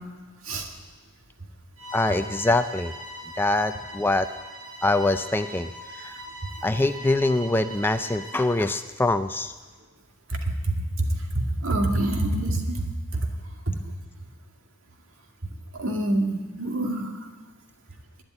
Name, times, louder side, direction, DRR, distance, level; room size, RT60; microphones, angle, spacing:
Bowed string instrument, 1.8-8.7, equal, 85° right, 5.2 m, -40 dB
voice 1, 1.9-2.9 3.4-4.3 4.8-6.2 6.6-9.5, left 2 dB, 10° left, 10 dB, 0.4 m, -24 dB
voice 2, 10.6-11.1 11.6-12.8 15.7-17.1, right 1 dB, 65° right, 2 dB, 2.3 m, -26 dB
12.0 x 10.5 x 9.8 m, 1.3 s
head